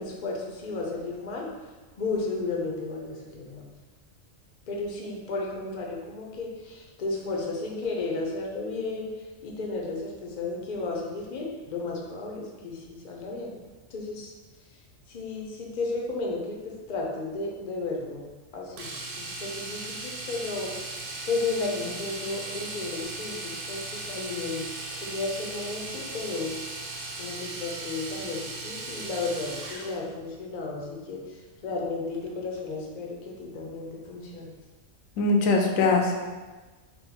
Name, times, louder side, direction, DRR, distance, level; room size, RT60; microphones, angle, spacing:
voice 1, 0.0-1.5 2.0-3.7 4.7-13.6 13.9-14.3 15.1-18.2 18.5-20.7 21.2-26.5 27.2-34.5, left 3 dB, 50° left, -1 dB, 0.6 m, -33 dB
Domestic sounds home sounds, 18.8-30.0 32.1-32.3 32.6-32.7, right 2 dB, 60° right, 0.6 m, -37 dB
voice 2, 35.2-36.1, left 3 dB, 85° left, 1 dB, 1.0 m, -21 dB
3.4 x 2.3 x 4.3 m, 1.3 s
omnidirectional pair, 1.4 m